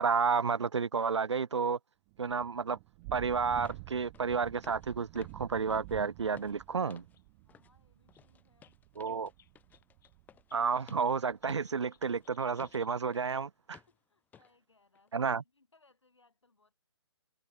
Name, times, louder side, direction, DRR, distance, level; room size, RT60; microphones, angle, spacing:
voice 1, 0.0-1.8 2.2-2.8 3.1-7.0 9.0-9.3 10.5-13.5 15.1-15.4, right 5 dB, 85° right, 0.5 m, -31 dB
Thunder / Rain, 2.1-11.6, right 29 dB, 25° right, 1.3 m, -50 dB
sound 1, 3.0-3.1 3.7-3.9 4.1-4.3 4.6-4.9 5.2-7.2 7.5-7.7 8.1-13.4 13.7-14.0 14.3-14.5 15.0-15.1, left 8 dB, 10° left, 1.9 m, -57 dB
sound 2, 6.1-6.2 6.9-7.0 7.1-7.3 7.5-7.6 8.1-8.3 8.6-11.1 11.4-13.4, left 10 dB, 45° left, 2.3 m, -66 dB
voice 2, 7.4-8.8 13.7-16.8, left 3 dB, 85° left, 7.2 m, -69 dB
figure-of-eight pair, 135°, 15 cm